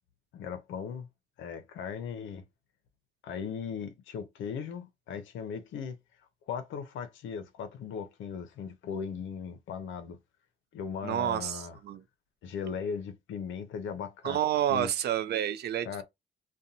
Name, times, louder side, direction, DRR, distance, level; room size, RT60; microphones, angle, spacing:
voice 1, 0.3-1.1 1.4-2.4 3.2-6.0 6.5-10.2 10.7-11.8 12.4-14.4 14.7-14.9 15.9-16.0, left 6 dB, 75° left, 0.6 m, -38 dB
voice 2, 11.0-12.0 14.2-16.0, right 11 dB, 55° right, 0.4 m, -29 dB
2.6 x 2.1 x 2.7 m
cardioid pair, 90°, 20 cm